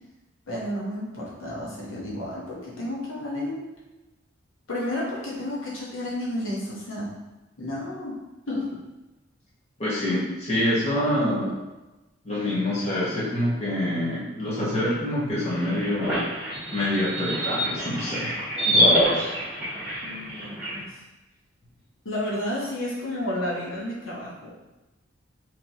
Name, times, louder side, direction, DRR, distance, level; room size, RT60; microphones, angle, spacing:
voice 1, 0.5-3.6 4.7-7.1 7.6-8.1 8.5-8.8 20.0-20.9 22.0-24.5, left 1 dB, 85° left, -6 dB, 1.0 m, -31 dB
voice 2, 9.8-11.5 12.2-16.2 16.7-18.4 18.7-19.3, left 1 dB, 30° left, -9 dB, 1.3 m, -26 dB
sound 1, 15.3-20.8, equal, 5° right, 1.4 m, -26 dB
3.2 x 2.9 x 4.1 m, 1.1 s
head